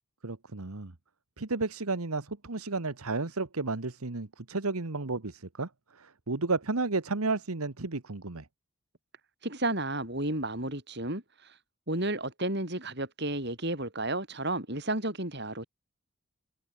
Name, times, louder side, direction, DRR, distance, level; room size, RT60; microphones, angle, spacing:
voice 1, 0.2-0.9 1.4-8.5, right 3 dB, 85° right, 1.4 m, -32 dB
voice 2, 9.4-11.2 11.9-15.6, right 2 dB, 50° right, 7.5 m, -32 dB
head